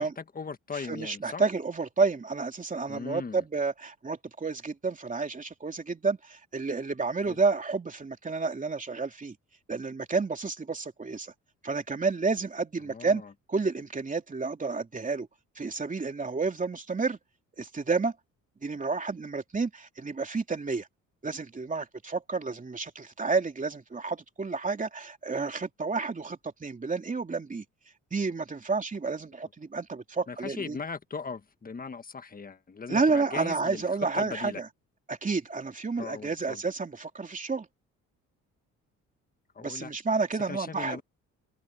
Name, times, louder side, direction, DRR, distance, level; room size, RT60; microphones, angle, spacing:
voice 1, 0.0-1.4 2.9-3.4 7.2-7.4 12.9-13.3 30.3-33.9 34.1-34.6 36.0-36.6 39.5-39.9 40.5-41.0, left 5 dB, 30° left, 1.5 m, -39 dB
voice 2, 0.7-9.4 9.7-11.3 11.6-13.2 13.5-15.3 15.6-17.2 17.6-18.1 18.6-20.9 21.2-27.6 28.1-30.8 32.9-34.7 35.1-37.7 39.6-41.0, right 4 dB, 25° right, 3.0 m, -30 dB
cardioid pair, 90°, 30 cm